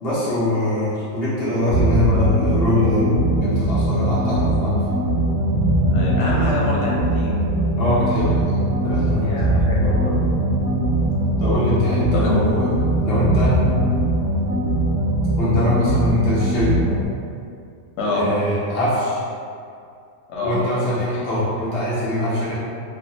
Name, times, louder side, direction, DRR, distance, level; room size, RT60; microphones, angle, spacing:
voice 1, 0.0-4.9 7.8-8.5 8.8-9.4 11.4-12.7 13.0-13.6 15.4-16.8 18.1-19.2 20.4-22.5, left 1 dB, 50° left, -9 dB, 0.8 m, -22 dB
sound 1, 1.7-17.1, right 1 dB, 35° right, 0.7 m, -20 dB
voice 2, 5.9-7.3 9.1-10.1 12.1-12.4 18.0-18.2 20.3-20.6, left 2 dB, 80° left, -5 dB, 1.2 m, -25 dB
3.1 x 2.4 x 2.7 m, 2.4 s
omnidirectional pair, 1.7 m